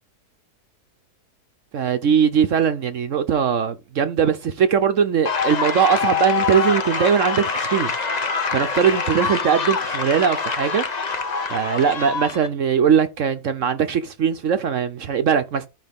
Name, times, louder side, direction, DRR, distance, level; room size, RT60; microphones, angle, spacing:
voice 1, 1.7-7.9 8.5-10.8 11.5-15.7, right 7 dB, 60° right, 1.0 m, -20 dB
sound 1, 5.2-12.5, left 5 dB, 35° left, 0.8 m, -25 dB
13.0 x 5.1 x 3.6 m
omnidirectional pair, 1.7 m